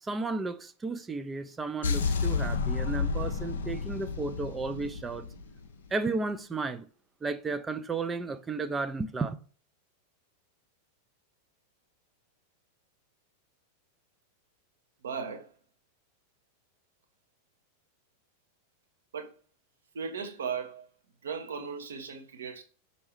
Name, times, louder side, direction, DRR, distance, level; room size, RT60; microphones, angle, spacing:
voice 1, 0.0-5.3 5.9-6.9 7.2-9.4, right 3 dB, 15° right, 0.4 m, -33 dB
sound 1, 1.8-5.9, left 5 dB, 65° left, 0.5 m, -31 dB
voice 2, 15.0-15.5 19.1-19.3 19.9-20.9 21.2-22.6, right 6 dB, 65° right, 0.8 m, -36 dB
5.3 x 2.7 x 3.1 m
figure-of-eight pair, 90°, 0 cm